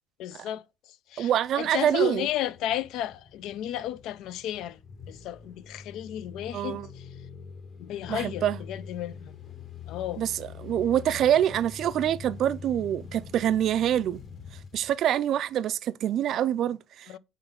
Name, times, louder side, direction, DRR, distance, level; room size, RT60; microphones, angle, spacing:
voice 1, 0.2-4.8 5.1-7.1 7.8-9.4 9.9-10.2 17.1-17.2, left 12 dB, 60° left, 0.4 m, -34 dB
voice 2, 1.2-2.3 6.5-6.9 8.1-8.6 10.2-14.2 14.7-17.2, right 10 dB, 45° right, 0.3 m, -26 dB
sound 1, 1.3-15.6, left 6 dB, 30° left, 1.1 m, -45 dB
4.4 x 3.9 x 5.6 m
cardioid pair, 170°, 0 cm